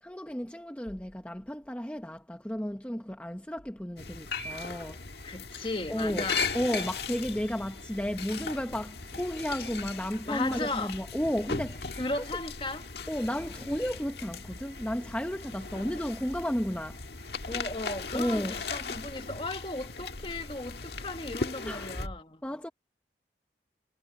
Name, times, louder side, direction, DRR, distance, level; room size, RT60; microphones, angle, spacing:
voice 1, 0.0-5.4 5.9-12.0 13.1-17.5 18.1-18.6 21.6-22.1 22.4-22.7, equal, 10° left, 0.9 m, -33 dB
sound 1, 4.0-22.1, left 4 dB, 70° left, 1.6 m, -38 dB
voice 2, 5.2-6.5 10.3-10.9 12.0-12.8 17.5-22.4, left 2 dB, 30° left, 1.6 m, -36 dB
head